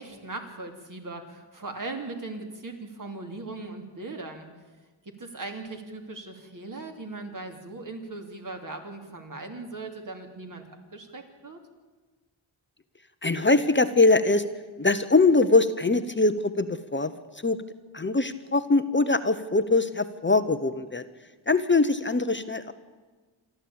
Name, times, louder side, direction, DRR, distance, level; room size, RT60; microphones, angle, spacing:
voice 1, 0.0-4.5 5.0-11.6, right 3 dB, 40° right, 4 dB, 3.1 m, -39 dB
voice 2, 13.2-14.4 14.8-17.1 17.4-17.6 17.9-21.0 21.5-22.7, left 3 dB, 25° left, 10 dB, 0.9 m, -22 dB
27.5 x 12.0 x 8.8 m, 1.3 s
wide cardioid pair, 110°, 47 cm